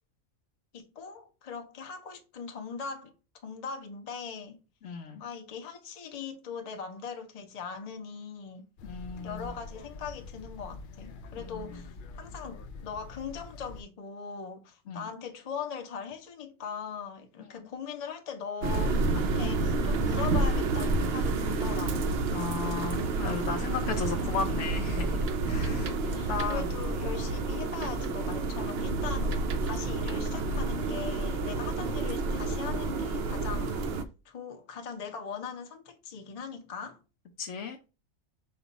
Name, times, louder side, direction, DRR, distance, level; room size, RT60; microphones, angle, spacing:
voice 1, 0.7-3.1 3.4-4.6 5.2-8.6 9.2-22.3 25.8-37.0, left 6 dB, 40° left, 0.6 m, -40 dB
voice 2, 4.8-5.3 8.8-9.6 11.5-11.8 14.9-15.1 17.6-17.7 22.3-26.7 37.4-37.8, left 5 dB, 65° left, 0.9 m, -35 dB
sound 1, 8.8-13.8, left 3 dB, 90° left, 0.4 m, -45 dB
sound 2, 18.6-34.0, right 3 dB, 65° right, 0.6 m, -29 dB
5.2 x 2.3 x 4.0 m
omnidirectional pair, 1.5 m